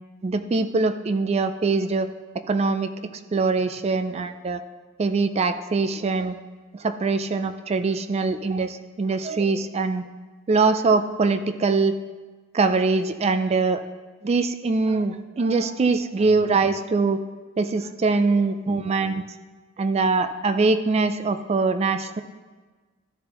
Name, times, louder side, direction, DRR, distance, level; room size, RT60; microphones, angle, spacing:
voice 1, 0.2-2.1 2.5-2.9 3.3-4.6 5.0-6.4 6.7-10.0 10.5-11.9 12.5-13.8 14.2-17.2 17.6-19.2 19.8-22.2, right 3 dB, 30° right, 10 dB, 0.3 m, -23 dB
13.0 x 6.8 x 3.0 m, 1.3 s
head